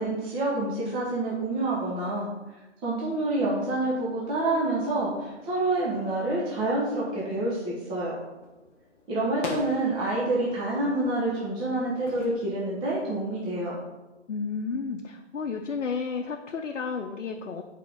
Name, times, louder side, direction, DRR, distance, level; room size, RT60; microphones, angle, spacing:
voice 1, 0.0-2.3 2.8-8.1 9.1-13.8, right 2 dB, 15° right, -5 dB, 1.0 m, -27 dB
sound 1, 5.2-12.3, left 2 dB, 10° left, 0.5 m, -44 dB
voice 2, 14.3-17.6, left 5 dB, 75° left, 2 dB, 0.7 m, -32 dB
7.6 x 4.5 x 3.6 m, 1.1 s
figure-of-eight pair, 140°, 37 cm